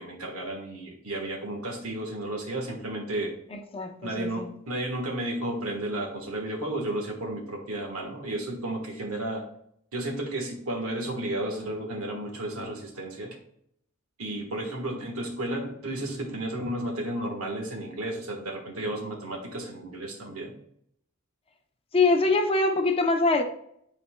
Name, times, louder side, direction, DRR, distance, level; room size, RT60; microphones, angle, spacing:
voice 1, 0.0-3.3 4.0-9.4 9.9-13.4 14.2-20.5, right 1 dB, 75° right, 2 dB, 1.4 m, -33 dB
voice 2, 3.5-4.5 21.9-23.4, left 3 dB, 25° left, 5 dB, 0.6 m, -24 dB
9.9 x 4.2 x 2.3 m, 0.70 s
head